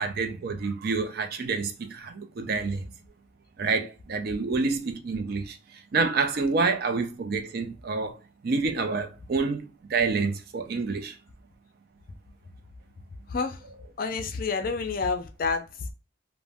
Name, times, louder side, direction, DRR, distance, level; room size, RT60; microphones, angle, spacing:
voice 1, 0.0-2.9 3.6-8.2 8.4-11.2, right 4 dB, 50° right, 0.4 m, -28 dB
voice 2, 13.3-13.6 14.0-15.9, left 4 dB, 45° left, 0.4 m, -29 dB
2.5 x 2.1 x 3.3 m
head